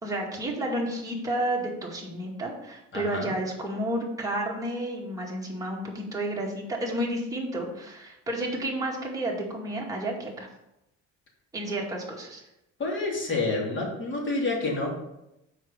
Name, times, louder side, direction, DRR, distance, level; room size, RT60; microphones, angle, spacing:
voice 1, 0.0-10.5 11.5-12.4, right 1 dB, 10° right, -3 dB, 2.2 m, -31 dB
voice 2, 2.9-3.3 12.8-15.0, left 2 dB, 35° left, -2 dB, 3.0 m, -28 dB
6.3 x 4.9 x 6.7 m, 0.87 s
cardioid pair, 105°, 31 cm